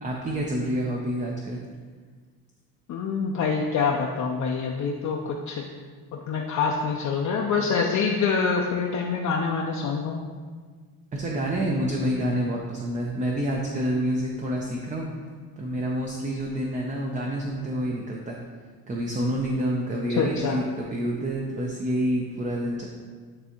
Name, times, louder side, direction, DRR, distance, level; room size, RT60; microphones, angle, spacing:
voice 1, 0.0-1.6 11.1-15.1 15.6-18.4 18.9-22.9, right 1 dB, 20° right, -1 dB, 0.5 m, -28 dB
voice 2, 2.9-5.6 6.1-10.2 20.2-20.6, left 5 dB, 50° left, 0 dB, 0.5 m, -26 dB
9.7 x 3.3 x 2.9 m, 1.6 s
cardioid pair, 140°, 38 cm